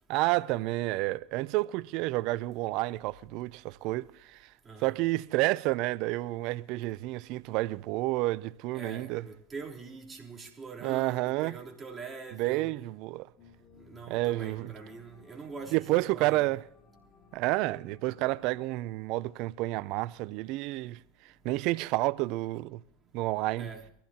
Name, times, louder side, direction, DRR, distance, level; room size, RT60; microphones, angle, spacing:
voice 1, 0.1-4.4 4.8-9.3 10.8-11.6 12.3-13.3 14.1-14.7 15.7-16.6 17.3-21.0 21.4-22.8 23.1-23.7, right 19 dB, 60° right, 0.5 m, -30 dB
voice 2, 4.6-5.0 8.7-12.7 13.9-16.5 23.6-23.9, right 4 dB, 25° right, 3.5 m, -44 dB
sound 1, 13.4-18.5, left 3 dB, 35° left, 2.9 m, -58 dB
24.0 x 15.0 x 2.9 m
hypercardioid pair, 95°, 0 cm